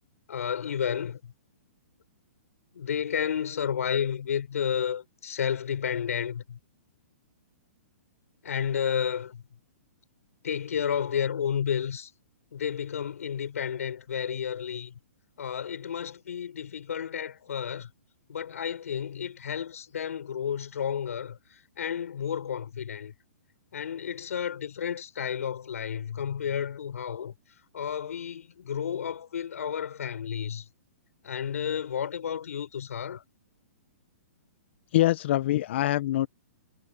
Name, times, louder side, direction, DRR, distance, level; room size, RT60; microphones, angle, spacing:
voice 1, 0.3-1.3 2.7-6.6 8.4-9.4 10.4-12.1 12.5-14.9 15.4-17.9 18.3-21.4 21.8-23.1 23.7-27.3 27.7-30.6 31.2-33.2, left 8 dB, 80° left, 5.7 m, -31 dB
voice 2, 34.9-36.3, left 14 dB, 50° left, 1.3 m, -24 dB
hypercardioid pair, 155°, 8 cm